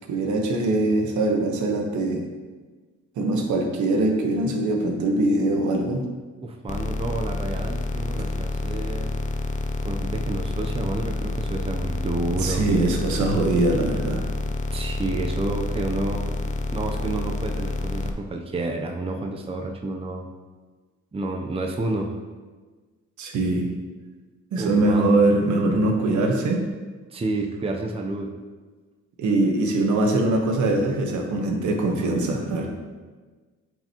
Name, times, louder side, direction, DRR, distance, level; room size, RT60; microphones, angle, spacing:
voice 1, 0.1-2.3 3.2-6.0 12.4-14.2 23.2-23.7 24.5-26.6 29.2-32.7, right 2 dB, 75° right, 2 dB, 1.2 m, -22 dB
voice 2, 6.4-9.1 9.8-12.7 14.7-16.3 16.7-20.3 21.1-22.2 24.6-25.2 27.1-28.3, right 2 dB, 20° right, 2 dB, 0.7 m, -30 dB
sound 1, 6.7-18.1, left 2 dB, 25° left, 0.5 m, -28 dB
8.9 x 4.7 x 3.0 m, 1.4 s
cardioid pair, 90°, 30 cm